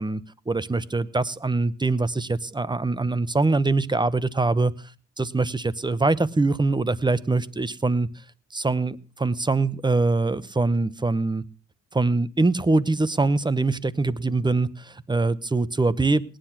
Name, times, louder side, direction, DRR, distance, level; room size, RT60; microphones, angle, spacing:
voice 1, 0.0-4.7 5.2-8.1 8.5-11.4 11.9-16.2, right 3 dB, 15° right, 19 dB, 0.9 m, -23 dB
18.0 x 10.5 x 5.9 m, 0.36 s
cardioid pair, 90°, 30 cm